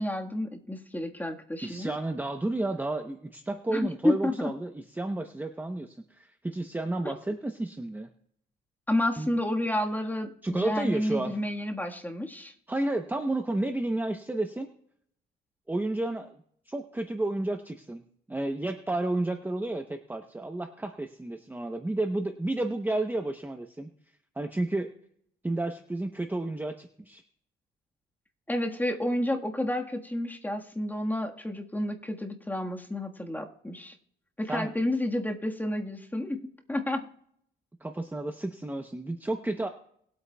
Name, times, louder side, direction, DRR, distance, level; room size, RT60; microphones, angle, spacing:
voice 1, 0.0-1.9 3.7-4.5 8.9-12.5 28.5-33.9 34.4-37.1, left 1 dB, 10° left, 3 dB, 1.5 m, -30 dB
voice 2, 1.6-8.1 9.2-9.3 10.4-11.4 12.7-14.7 15.7-18.0 18.3-23.9 24.4-24.9 25.4-27.2 34.5-34.7 37.8-39.7, right 2 dB, 10° right, 6 dB, 0.8 m, -31 dB
21.0 x 8.4 x 2.3 m, 0.67 s
cardioid pair, 90°, 20 cm